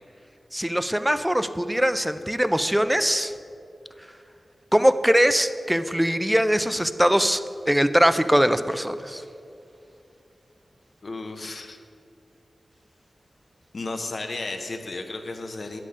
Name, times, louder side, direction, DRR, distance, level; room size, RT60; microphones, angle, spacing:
voice 1, 0.5-3.3 4.7-7.4 7.7-9.2, equal, 5° right, 11 dB, 0.3 m, -21 dB
voice 2, 11.0-11.8 13.7-15.8, left 3 dB, 55° left, 4 dB, 0.7 m, -34 dB
9.8 x 7.5 x 3.7 m, 2.5 s
wide cardioid pair, 95°, 0 cm